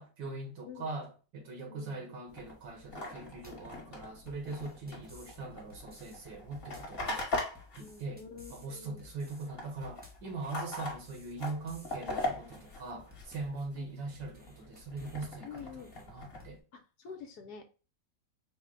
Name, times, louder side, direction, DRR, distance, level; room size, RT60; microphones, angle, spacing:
voice 1, 0.0-7.2 7.8-8.2 8.5-16.6, right 3 dB, 80° right, 1.8 m, -41 dB
voice 2, 1.6-2.1 7.8-9.1 13.8-13.9 15.4-15.9 16.7-17.6, left 6 dB, 70° left, 1.1 m, -48 dB
sound 1, 2.3-8.9 9.2-13.8 14.2-16.4, left 2 dB, 35° left, 1.3 m, -41 dB
sound 2, 3.4-3.7 4.3-5.4 5.7-6.2 6.5-7.0 7.5-8.7 9.0-9.5 9.8-10.3 10.8-12.0 12.3-12.8 13.1-13.6 14.1-15.3 15.6-16.1 16.4-16.6, left 3 dB, 15° right, 0.3 m, -56 dB
4.8 x 2.1 x 3.8 m
omnidirectional pair, 1.9 m